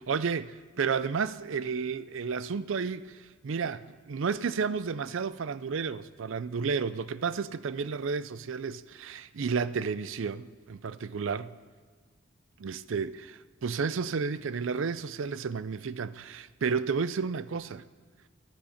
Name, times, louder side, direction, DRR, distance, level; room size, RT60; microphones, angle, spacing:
voice 1, 0.0-3.2 3.4-11.5 12.6-17.8, right 5 dB, 65° right, 0.4 m, -32 dB
15.0 x 13.0 x 5.7 m
head